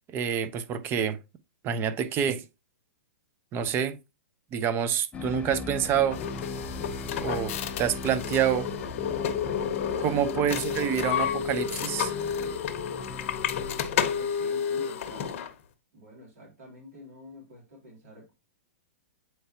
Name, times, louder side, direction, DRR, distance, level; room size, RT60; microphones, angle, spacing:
voice 1, 0.1-1.2 1.6-2.4 3.5-4.0 4.5-6.2 7.2-8.7 10.0-12.1, right 8 dB, 25° right, 0.7 m, -27 dB
sound 1, 5.1-13.9, left 3 dB, 15° left, 0.5 m, -40 dB
sound 2, 6.1-15.5, left 8 dB, 55° left, 0.8 m, -31 dB
voice 2, 14.1-15.4 15.9-18.3, left 1 dB, 65° right, 3.3 m, -48 dB
7.8 x 4.6 x 2.8 m
hypercardioid pair, 130°, 8 cm